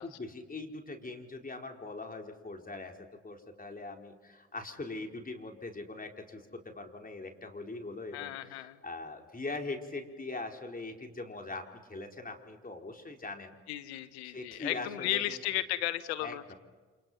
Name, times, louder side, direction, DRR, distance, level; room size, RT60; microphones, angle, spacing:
voice 1, 0.0-3.0 3.2-13.5 14.2-15.4 16.2-16.6, left 3 dB, 25° left, 3 dB, 4.7 m, -41 dB
voice 2, 8.1-8.8 13.7-16.5, left 14 dB, 90° left, 11 dB, 1.2 m, -35 dB
29.0 x 27.5 x 5.8 m, 1.3 s
hypercardioid pair, 50°, 32 cm